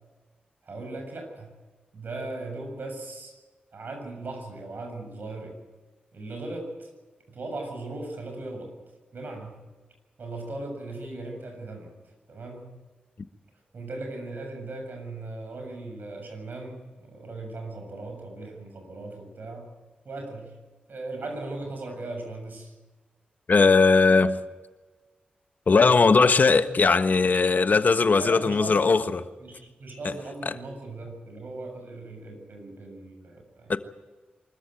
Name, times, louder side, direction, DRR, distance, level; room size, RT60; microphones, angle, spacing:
voice 1, 0.6-1.5 1.9-3.3 3.7-5.6 6.1-6.9 7.3-8.7 9.1-9.6 10.2-11.9 12.3-12.7 13.7-19.7 20.0-20.6 20.9-22.7 26.2-26.3 28.2-28.9 29.4-33.7, right 2 dB, 60° right, 7.1 m, -38 dB
voice 2, 23.5-24.4 25.7-29.3 30.0-30.1 30.4-30.5 33.7-33.8, left 4 dB, 55° left, 1.3 m, -19 dB
24.5 x 14.0 x 9.2 m
supercardioid pair, 45°, 4 cm